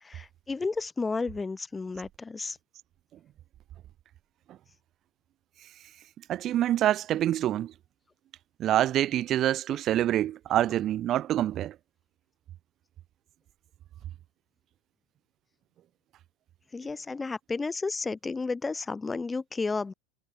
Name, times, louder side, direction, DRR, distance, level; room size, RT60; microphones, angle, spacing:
voice 1, 0.0-2.6 16.7-19.9, left 4 dB, 15° left, 1.6 m, -32 dB
voice 2, 6.3-7.7 8.6-11.7, right 12 dB, 45° right, 1.1 m, -26 dB
hypercardioid pair, 95°, 0 cm